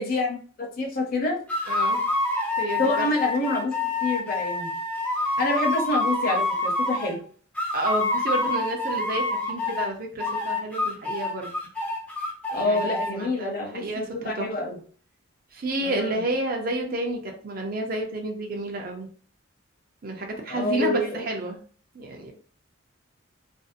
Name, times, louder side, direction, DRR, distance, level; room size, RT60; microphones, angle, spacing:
voice 1, 0.0-1.4 2.8-4.7 5.4-7.2 12.5-14.8 15.8-16.2 20.5-21.2, left 2 dB, 45° left, 0 dB, 0.7 m, -27 dB
sound 1, 1.5-7.2 7.6-9.9 10.2-13.1, left 2 dB, 5° left, 0.5 m, -27 dB
voice 2, 1.7-2.0 2.6-3.1 7.7-11.5 12.6-14.5 15.5-19.1 20.0-21.6 21.9-22.3, right 2 dB, 45° right, 2 dB, 0.6 m, -30 dB
2.6 x 2.1 x 2.5 m, 0.43 s
head